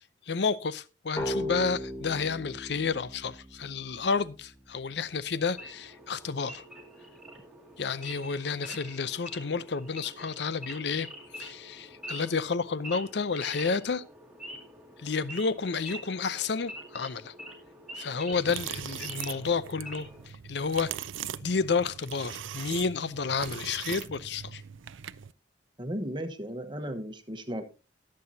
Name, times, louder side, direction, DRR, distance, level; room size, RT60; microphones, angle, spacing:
voice 1, 0.3-6.6 7.8-11.1 11.4-14.0 15.0-17.3 18.0-20.1 20.5-21.0 21.4-24.6, left 5 dB, 60° left, 0.6 m, -30 dB
sound 1, 1.2-4.6, left 1 dB, 15° left, 3.0 m, -37 dB
Wild animals / Idling, 5.5-20.3, equal, ahead, 2.2 m, -45 dB
sound 2, 18.3-25.3, right 9 dB, 85° right, 0.5 m, -40 dB
voice 2, 25.8-27.6, equal, 25° right, 1.1 m, -35 dB
19.5 x 7.7 x 2.8 m
head